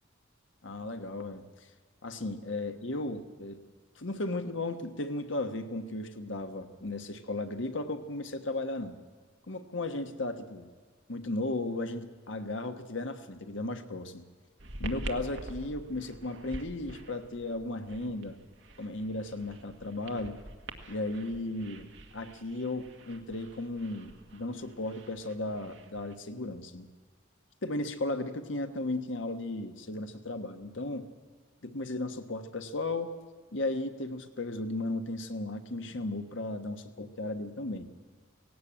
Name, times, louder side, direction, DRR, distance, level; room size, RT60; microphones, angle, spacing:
voice 1, 0.6-1.4 2.0-3.6 3.9-9.0 9.5-10.7 11.1-14.2 14.8-18.4 18.8-20.4 20.9-26.9 27.6-31.1 31.6-33.1 33.5-37.9, left 2 dB, 70° left, 8 dB, 1.3 m, -35 dB
sound 1, 14.6-26.1, right 1 dB, 60° right, 1.7 m, -46 dB
18.0 x 17.0 x 8.6 m, 1.5 s
head